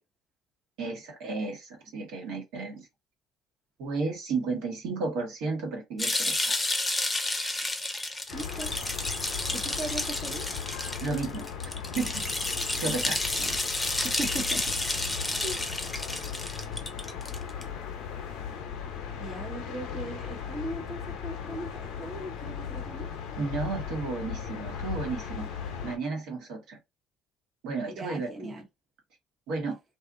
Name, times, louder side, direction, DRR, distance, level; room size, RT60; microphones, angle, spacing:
voice 1, 0.8-2.8 3.8-6.7 11.0-11.5 11.9-12.3 12.8-13.2 23.4-25.5 25.8-26.8 27.6-28.6 29.5-29.8, right 4 dB, 70° right, 1.2 m, -33 dB
sound 1, 6.0-17.6, left 2 dB, 15° left, 0.7 m, -31 dB
sound 2, 8.3-26.0, left 7 dB, 70° left, 0.6 m, -37 dB
voice 2, 8.3-8.7 9.5-10.5 13.4-13.6 14.0-14.6 15.4-15.7 19.2-21.7 22.0-23.1 27.9-28.6, right 2 dB, 35° right, 0.9 m, -38 dB
2.7 x 2.4 x 2.5 m
hypercardioid pair, 65°, 0 cm